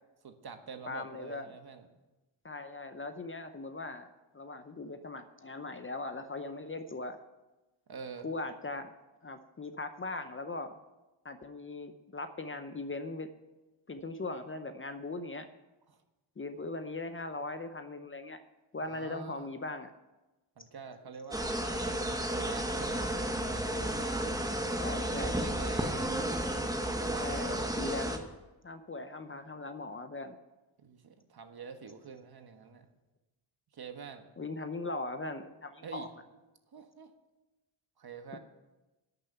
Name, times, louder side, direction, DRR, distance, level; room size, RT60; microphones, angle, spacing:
voice 1, 0.2-1.9 7.9-8.3 15.9-16.0 18.8-19.5 20.6-24.2 25.0-26.2 26.8-28.1 30.8-32.8 33.7-34.3 35.8-36.1 36.7-37.1 38.0-38.4, right 5 dB, 50° right, 7 dB, 1.4 m, -47 dB
voice 2, 0.9-1.5 2.4-4.1 4.3-7.2 8.2-8.9 9.2-10.8 11.2-13.3 13.9-15.5 16.4-18.4 18.7-19.9 24.8-25.4 27.2-28.3 28.6-30.4 34.4-36.1 38.3-38.4, left 2 dB, 25° left, 9 dB, 0.7 m, -39 dB
sound 1, 21.3-28.2, right 1 dB, 5° right, 1.3 m, -32 dB
11.5 x 6.8 x 9.0 m, 1.1 s
cardioid pair, 100°, 49 cm